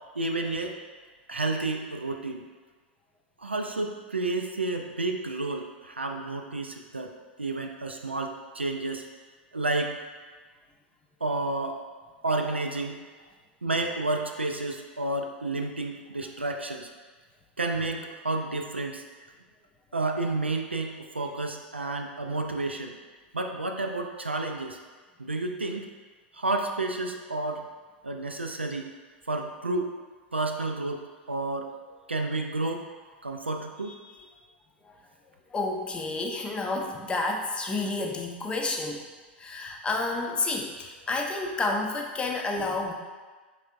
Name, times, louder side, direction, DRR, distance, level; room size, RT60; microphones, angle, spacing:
voice 1, 0.2-0.8 1.3-2.4 3.4-7.1 7.4-9.0 9.5-10.0 11.2-11.8 12.2-13.0 13.6-16.9 17.6-19.0 19.9-22.9 23.3-24.8 25.2-25.9 26.3-27.6 28.0-28.9 29.3-29.9 30.3-31.0 31.3-31.7 32.1-32.9 33.2-33.9, right 2 dB, 90° right, 4 dB, 0.3 m, -30 dB
voice 2, 33.8-34.1 34.8-35.0 35.5-39.1 39.4-42.9, left 2 dB, 15° left, 1 dB, 0.5 m, -30 dB
4.4 x 3.3 x 2.5 m, 1.4 s
figure-of-eight pair, 90°, 6 cm